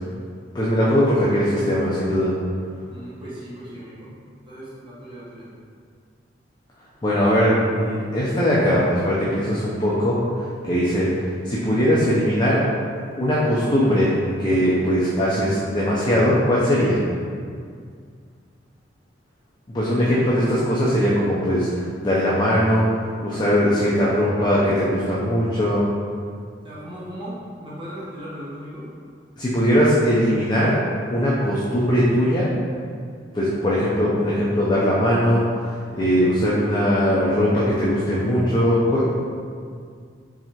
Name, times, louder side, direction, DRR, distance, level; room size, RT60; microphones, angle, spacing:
voice 1, 0.5-2.3 7.0-10.2 10.7-11.1 11.4-12.6 13.1-14.1 14.4-17.0 19.7-21.7 22.0-22.9 23.2-25.8 29.4-30.7 31.1-32.5 33.3-35.7 36.0-39.2, equal, 25° left, -7 dB, 0.5 m, -20 dB
voice 2, 2.9-4.1 4.5-5.5 26.6-28.9, equal, 30° right, -10 dB, 1.0 m, -37 dB
4.7 x 3.3 x 2.8 m, 2.1 s
head